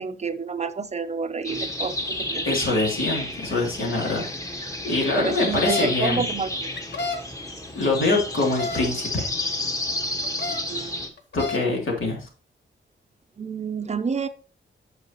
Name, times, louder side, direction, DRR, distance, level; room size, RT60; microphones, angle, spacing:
voice 1, 0.0-2.5 5.2-6.7 7.0-7.1 10.4-11.0 13.4-14.3, right 5 dB, 35° right, 10 dB, 0.6 m, -29 dB
sound 1, 1.4-11.1, left 1 dB, 15° left, 1.2 m, -31 dB
voice 2, 2.4-4.3 4.8-6.3 7.7-9.3 11.3-12.3, left 2 dB, 80° left, -1 dB, 3.0 m, -24 dB
sound 2, 5.4-5.9 6.8-7.2 8.4-8.8 10.2-10.6 11.2-11.6, left 3 dB, 60° left, 1.4 m, -29 dB
9.0 x 6.4 x 3.0 m, 0.37 s
wide cardioid pair, 140°, 20 cm